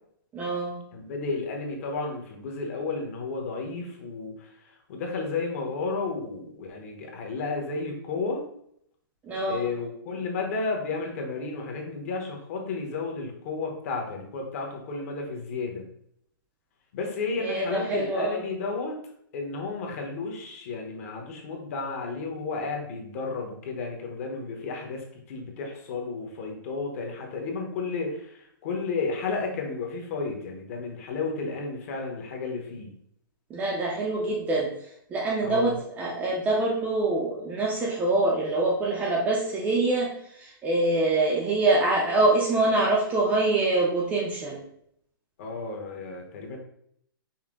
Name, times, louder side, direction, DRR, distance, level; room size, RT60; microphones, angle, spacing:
voice 1, 0.3-0.8 9.2-9.6 17.4-18.4 33.5-34.7 35.1-44.6, right 2 dB, 10° right, -2 dB, 0.5 m, -25 dB
voice 2, 0.9-8.4 9.5-15.8 16.9-19.0 19.3-32.9 35.4-35.8 45.4-46.6, left 4 dB, 40° left, 1 dB, 1.0 m, -32 dB
5.6 x 2.1 x 3.7 m, 0.71 s
hypercardioid pair, 155°, 12 cm